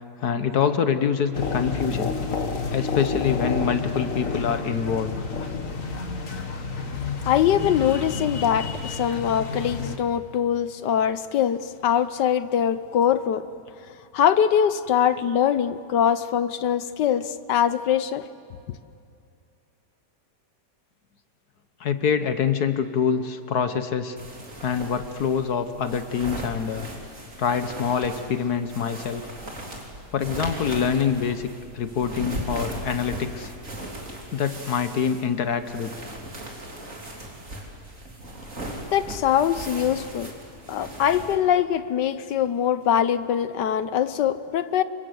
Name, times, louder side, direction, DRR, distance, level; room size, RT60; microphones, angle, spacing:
voice 1, 0.2-2.1 2.7-5.2 21.8-24.2 24.6-26.9 27.4-29.3 30.1-31.5 31.7-33.5 34.3-35.9, left 7 dB, 65° left, 10 dB, 1.5 m, -25 dB
sound 1, 1.3-10.0, left 4 dB, 50° left, 2.0 m, -30 dB
voice 2, 7.3-13.5 14.1-18.3 38.9-40.3 40.7-44.8, left 9 dB, 80° left, 13 dB, 1.5 m, -23 dB
sound 2, 24.2-41.4, right 1 dB, 50° right, 3.9 m, -38 dB
28.0 x 23.0 x 7.9 m, 2.5 s
omnidirectional pair, 1.8 m